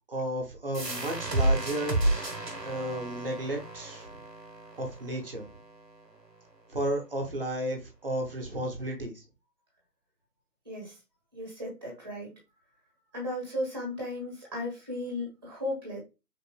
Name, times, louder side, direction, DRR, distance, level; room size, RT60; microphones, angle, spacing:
voice 1, 0.1-2.3 2.6-4.2 4.8-5.4 6.7-9.2, right 1 dB, 35° right, 1 dB, 1.2 m, -33 dB
sound 1, 0.7-6.1, right 2 dB, 80° right, 1.5 m, -31 dB
voice 2, 10.6-11.0 11.3-12.3 13.1-16.0, left 1 dB, 15° right, -2 dB, 1.5 m, -35 dB
5.1 x 4.1 x 2.3 m, 0.26 s
figure-of-eight pair, 160°, 49 cm